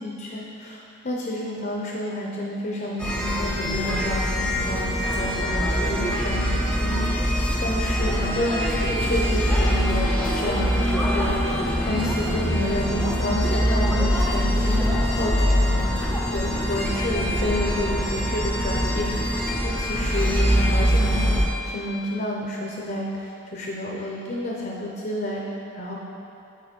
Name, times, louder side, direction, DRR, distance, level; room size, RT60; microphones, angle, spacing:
voice 1, 0.0-19.2 19.6-21.3 21.7-25.4 25.7-25.9, left 1 dB, 45° left, -2 dB, 0.7 m, -30 dB
sound 1, 3.0-21.5, equal, 5° left, 0.6 m, -23 dB
8.2 x 4.0 x 4.4 m, 2.8 s
head